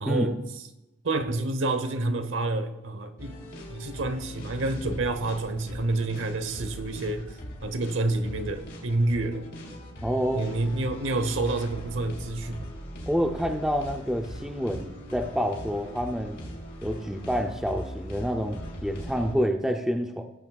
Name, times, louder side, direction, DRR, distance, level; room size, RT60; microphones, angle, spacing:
voice 1, 0.0-0.4 1.0-3.4 3.7-7.3 7.6-9.5 10.3-12.7, right 2 dB, 60° right, 9 dB, 0.8 m, -28 dB
sound 1, 3.2-19.3, equal, 55° left, 3.4 m, -40 dB
voice 2, 10.0-10.5 13.1-16.4 16.8-20.2, equal, ahead, 3 dB, 0.4 m, -28 dB
16.5 x 8.2 x 2.3 m, 0.96 s
head